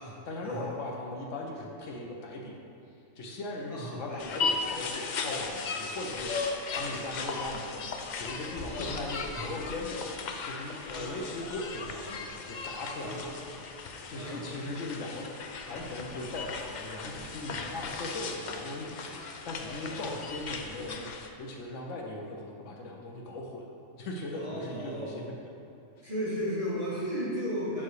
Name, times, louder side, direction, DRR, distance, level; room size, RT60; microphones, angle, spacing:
voice 1, 0.3-2.5 3.2-7.8 8.2-10.0 10.4-13.2 14.1-19.2 19.4-21.1 21.4-23.6 24.0-25.2, left 2 dB, 85° left, -1 dB, 1.1 m, -39 dB
voice 2, 3.7-4.3 8.8-8.9 9.3-9.5 10.9-11.2 13.0-13.3 14.1-14.6 20.0-20.1 24.3-25.3 26.0-27.8, equal, 30° right, -8 dB, 1.0 m, -35 dB
sound 1, 4.2-21.3, left 4 dB, 60° left, 0.4 m, -37 dB
7.5 x 5.6 x 3.2 m, 2.6 s
omnidirectional pair, 1.2 m